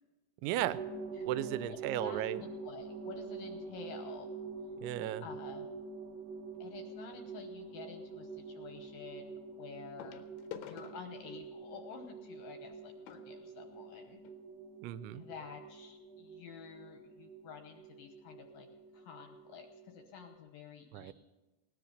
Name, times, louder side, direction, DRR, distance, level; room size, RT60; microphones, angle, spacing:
voice 1, 0.4-0.8 1.3-2.4 4.8-5.2 14.8-15.2 20.9-21.1, right 13 dB, 90° right, 14 dB, 2.9 m, -35 dB
sound 1, 0.6-20.3, right 4 dB, 65° right, 1.6 m, -46 dB
voice 2, 1.2-4.3 5.2-5.7 6.6-10.2 10.6-14.2 15.1-18.7 18.9-21.1, left 6 dB, 70° left, 5 dB, 2.2 m, -50 dB
sound 2, 6.4-6.7 8.4-8.5 10.0-14.4 15.2-15.3 15.5-15.7 16.2-16.3, left 9 dB, 90° left, 3.2 m, -52 dB
18.5 x 10.5 x 6.5 m, 1.2 s
omnidirectional pair, 5.1 m